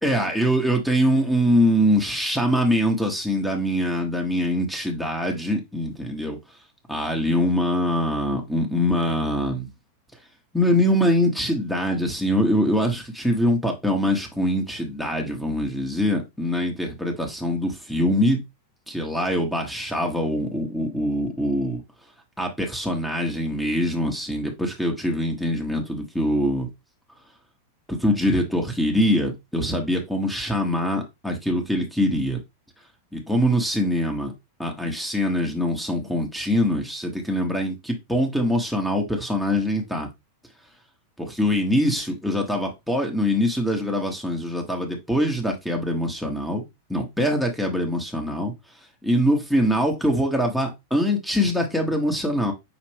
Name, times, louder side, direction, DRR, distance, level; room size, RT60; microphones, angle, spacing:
voice 1, 0.0-6.4 6.9-9.7 10.5-18.4 18.9-21.8 22.4-26.7 27.9-32.4 33.1-34.3 34.6-40.1 41.2-46.6 46.9-48.5 49.0-52.5, equal, ahead, 1.0 m, -23 dB
5.9 x 2.5 x 3.4 m
figure-of-eight pair, 90°, 0 cm